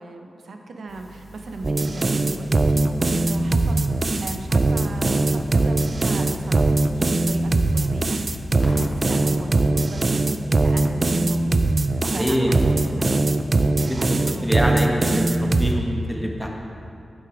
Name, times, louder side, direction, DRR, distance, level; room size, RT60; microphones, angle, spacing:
voice 1, 0.0-13.4 13.8-15.0, right 3 dB, 70° right, 4 dB, 0.8 m, -37 dB
sound 1, 0.9-9.1, right 1 dB, 30° left, 1.6 m, -43 dB
sound 2, 1.6-15.7, right 2 dB, 40° right, 0.4 m, -21 dB
Boom, 8.6-10.4 11.2-11.5, left 3 dB, 50° left, 0.4 m, -38 dB
voice 2, 12.0-12.5 13.9-14.2 14.4-16.5, equal, ahead, 0 dB, 1.1 m, -25 dB
8.4 x 6.6 x 4.9 m, 2.5 s
wide cardioid pair, 100°, 0 cm